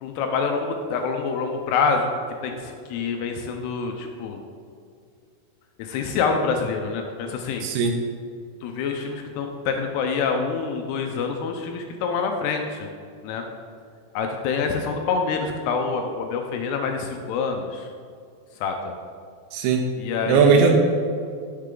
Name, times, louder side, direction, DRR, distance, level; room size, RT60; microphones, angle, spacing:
voice 1, 0.0-4.4 5.8-7.7 8.6-12.9 13.2-13.4 14.1-17.9 18.6-18.8 20.0-20.8, left 5 dB, 80° left, 4 dB, 2.6 m, -26 dB
voice 2, 7.6-8.0 19.5-19.8 20.3-20.8, right 5 dB, 85° right, 2 dB, 3.0 m, -18 dB
12.0 x 6.7 x 3.8 m, 2.2 s
omnidirectional pair, 5.0 m